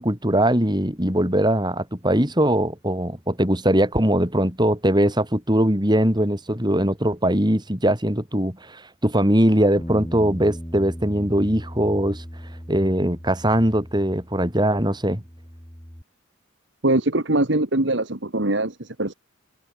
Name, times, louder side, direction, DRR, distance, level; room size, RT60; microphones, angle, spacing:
voice 1, 0.0-12.2 12.7-15.2, right 1 dB, 20° right, 5.5 m, -21 dB
Bass guitar, 9.8-14.5 14.8-16.0, equal, 15° left, 6.0 m, -38 dB
voice 2, 16.8-19.1, right 2 dB, 60° right, 2.2 m, -22 dB
head